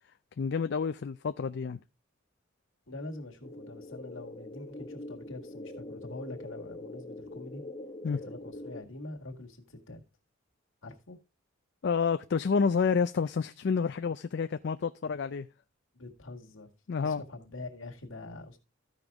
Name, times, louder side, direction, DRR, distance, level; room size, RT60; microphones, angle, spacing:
voice 1, 0.4-1.8 8.0-8.2 11.8-15.5 16.9-17.2, left 5 dB, 55° left, 0.4 m, -29 dB
voice 2, 2.9-7.6 8.1-10.0 10.8-11.2 15.9-16.7 17.0-18.6, left 2 dB, 75° left, 1.8 m, -44 dB
sound 1, 3.4-8.8, left 2 dB, 25° left, 1.6 m, -44 dB
14.5 x 5.2 x 3.5 m
head